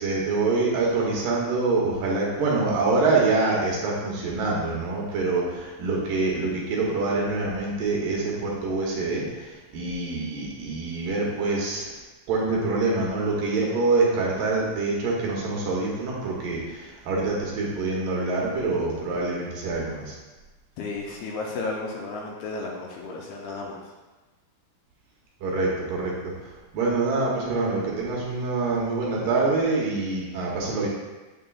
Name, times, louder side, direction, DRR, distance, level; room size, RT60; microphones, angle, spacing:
voice 1, 0.0-11.9 12.3-20.2 25.4-30.9, right 3 dB, 70° right, -3 dB, 2.2 m, -25 dB
voice 2, 20.8-23.8, left 3 dB, 80° left, -2 dB, 2.5 m, -33 dB
7.0 x 6.5 x 2.3 m, 1.2 s
omnidirectional pair, 4.8 m